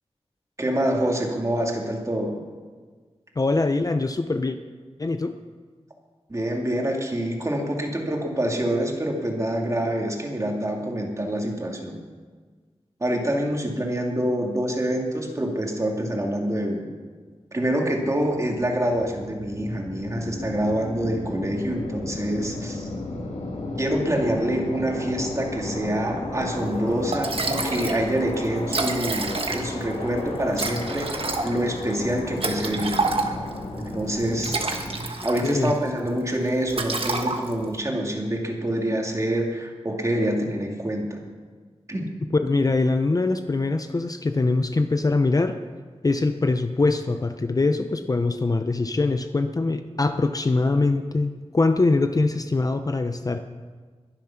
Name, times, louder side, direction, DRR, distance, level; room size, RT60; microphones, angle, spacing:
voice 1, 0.6-2.4 6.3-12.0 13.0-16.9 17.5-22.9 23.8-31.1 31.4-33.0 33.8-34.6 35.2-41.0 41.9-42.1, right 1 dB, 30° right, 0 dB, 2.3 m, -26 dB
voice 2, 3.4-4.6 5.0-5.3 35.4-35.7 42.3-45.6 46.0-53.4, left 3 dB, 35° left, 8 dB, 0.6 m, -23 dB
sound 1, 18.1-35.1, left 2 dB, 80° left, 2.1 m, -34 dB
Liquid, 26.8-26.9 27.1-28.0 28.3-28.4 28.6-29.9 30.5-33.6 34.2-35.8 36.1-36.3 36.7-37.7, right 3 dB, 55° right, 1.4 m, -28 dB
22.0 x 7.4 x 5.8 m, 1.5 s
wide cardioid pair, 105°, 11 cm